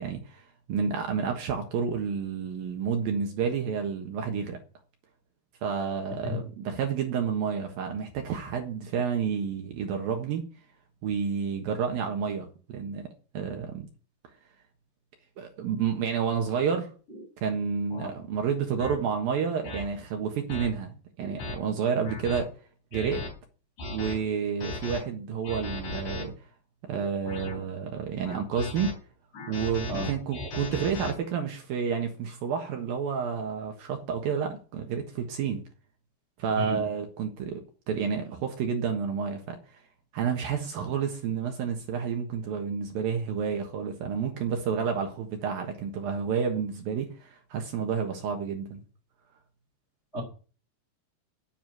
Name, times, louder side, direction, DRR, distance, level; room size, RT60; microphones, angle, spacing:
voice 1, 0.0-4.6 5.6-10.4 11.0-13.1 13.3-13.9 15.4-16.9 17.4-22.5 22.9-23.3 23.9-26.3 26.8-29.0 29.5-35.6 36.4-39.8 40.1-48.8, right 6 dB, 65° right, 2.9 m, -30 dB
voice 2, 6.2-6.4 18.0-18.1 29.9-30.1 36.6-36.8 50.1-50.2, left 1 dB, 15° left, 2.7 m, -31 dB
sound 1, 17.1-17.3 17.9-18.1 18.8-19.0 19.6-19.8 20.5-20.7 21.2-21.6 22.0-22.4 22.9-23.3 23.8-24.2 24.6-25.0 25.4-26.2 26.9-27.6 28.2-28.9 29.3-31.1, left 2 dB, 50° left, 5.1 m, -36 dB
10.0 x 7.2 x 9.3 m
omnidirectional pair, 5.0 m